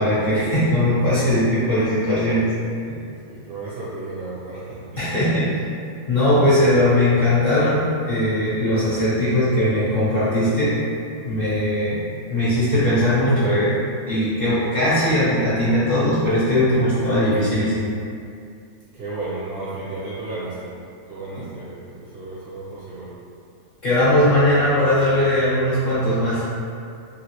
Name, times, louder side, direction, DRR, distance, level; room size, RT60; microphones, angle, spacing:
voice 1, 0.0-2.5 2.9-3.0 5.0-5.5 6.1-10.7 11.2-12.0 12.3-13.7 14.1-17.9 21.4-21.5 23.8-26.4, left 1 dB, 45° left, -12 dB, 0.8 m, -19 dB
voice 2, 3.1-5.4 18.9-20.8 21.1-23.2, right 2 dB, 65° right, -8 dB, 0.6 m, -33 dB
3.1 x 2.7 x 2.9 m, 2.4 s
omnidirectional pair, 1.6 m